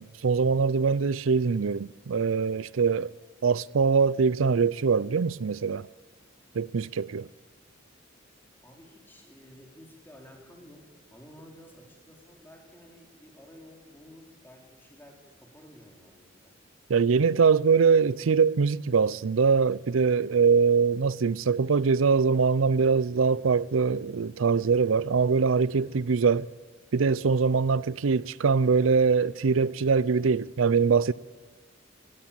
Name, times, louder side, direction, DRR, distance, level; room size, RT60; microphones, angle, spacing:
voice 1, 0.0-3.1 3.4-5.9 6.5-7.3 16.9-26.5 26.9-31.1, right 5 dB, 85° right, 0.5 m, -23 dB
voice 2, 8.6-16.6, equal, 10° left, 3.7 m, -52 dB
19.0 x 15.5 x 9.0 m
head